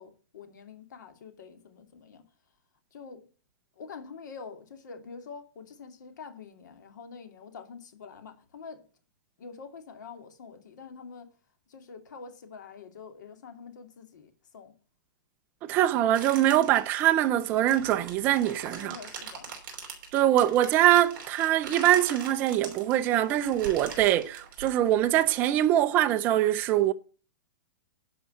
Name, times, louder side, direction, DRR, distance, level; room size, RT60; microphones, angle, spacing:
voice 1, 0.0-2.2 2.9-3.3 3.8-8.8 9.4-11.3 11.7-14.7 18.7-19.5, left 5 dB, 60° left, 2.4 m, -46 dB
voice 2, 15.6-19.0 20.1-26.9, right 12 dB, 15° right, 0.5 m, -23 dB
sound 1, 16.1-25.3, right 6 dB, 35° right, 4.2 m, -43 dB
11.5 x 5.5 x 8.0 m
hypercardioid pair, 175°, 11 cm